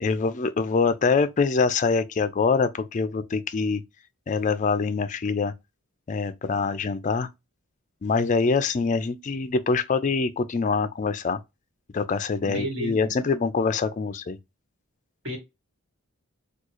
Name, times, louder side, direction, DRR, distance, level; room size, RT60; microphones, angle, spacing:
voice 1, 0.0-3.8 4.3-5.5 6.1-7.3 8.0-11.4 11.9-14.4, left 4 dB, 35° left, 0.3 m, -24 dB
voice 2, 12.4-13.1 15.2-15.4, right 1 dB, 55° right, 1.7 m, -32 dB
3.6 x 2.3 x 2.9 m
head